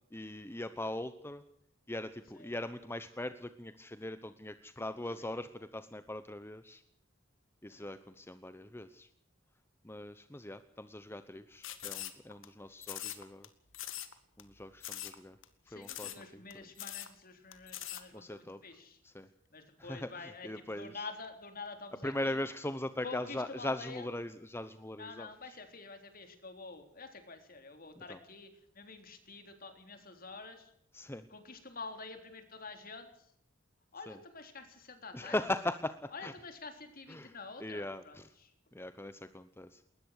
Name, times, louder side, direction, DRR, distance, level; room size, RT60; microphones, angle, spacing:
voice 1, 0.0-1.4 1.9-6.8 7.6-9.1 9.8-13.5 14.4-15.4 15.6-16.6 18.1-18.6 19.0-19.3 19.8-21.1 22.0-25.6 28.0-28.2 30.9-31.3 34.1-34.2 35.1-36.3 37.1-37.3 37.6-38.3 38.7-39.8, left 1 dB, 10° left, 11 dB, 0.9 m, -40 dB
sound 1, 11.6-12.5 12.8-13.5 13.7-14.1 14.4-14.5 14.8-15.2 15.4-15.5 15.8-16.2 16.5-16.6 16.8-17.1 17.5-18.0, left 12 dB, 75° left, 2.2 m, -42 dB
voice 2, 15.7-19.0 19.5-22.4 23.0-24.1 25.0-30.7 31.3-33.3 33.9-35.3 36.1-38.5, left 4 dB, 45° left, 7 dB, 3.7 m, -48 dB
21.0 x 20.0 x 6.6 m, 0.70 s
head